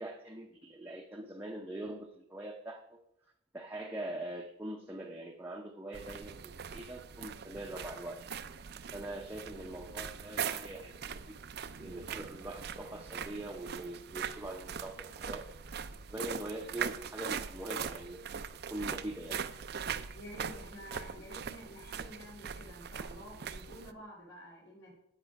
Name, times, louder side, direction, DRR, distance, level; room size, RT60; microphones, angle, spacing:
voice 1, 0.0-3.0 3.5-8.2 8.9-11.4 11.7-15.5 16.1-18.4 18.7-19.5, right 1 dB, 10° right, 0 dB, 0.7 m, -43 dB
sound 1, 5.9-23.9, right 7 dB, 50° right, 0.5 m, -41 dB
voice 2, 20.1-25.0, left 1 dB, 70° left, -4 dB, 3.9 m, -50 dB
9.0 x 8.3 x 5.2 m, 0.77 s
head